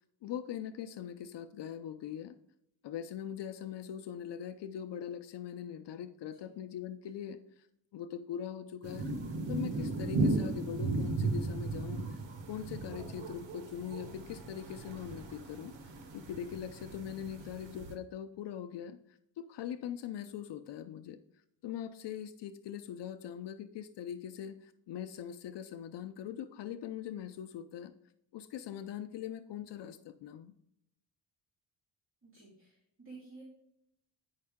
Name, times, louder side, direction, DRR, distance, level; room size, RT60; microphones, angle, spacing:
voice 1, 0.2-2.4 2.8-7.4 7.9-9.1 9.5-12.2 12.5-21.2 21.6-27.9 28.3-30.5, left 9 dB, 70° left, 9 dB, 0.6 m, -42 dB
voice 2, 6.3-6.6 10.2-10.6 17.3-17.7 32.2-33.4, right 3 dB, 30° right, -5 dB, 2.2 m, -54 dB
sound 1, 8.8-17.9, right 3 dB, 85° right, 1.2 m, -36 dB
9.3 x 5.6 x 3.6 m, 0.75 s
cardioid pair, 135°, 44 cm